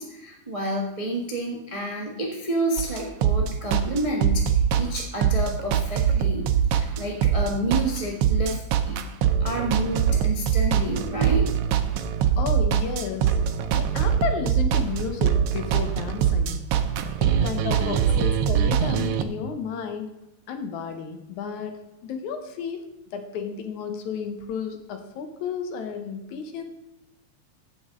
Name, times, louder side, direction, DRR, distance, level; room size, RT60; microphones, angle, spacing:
voice 1, 0.0-9.0 9.4-11.5, right 1 dB, 55° right, -1 dB, 0.3 m, -29 dB
sound 1, 2.8-19.2, right 8 dB, 85° right, 1.3 m, -23 dB
voice 2, 12.4-13.3 13.7-16.6 17.2-20.1 20.5-22.8 23.1-26.6, left 6 dB, 75° left, 6 dB, 2.4 m, -32 dB
15.5 x 6.2 x 3.8 m, 0.87 s
omnidirectional pair, 3.5 m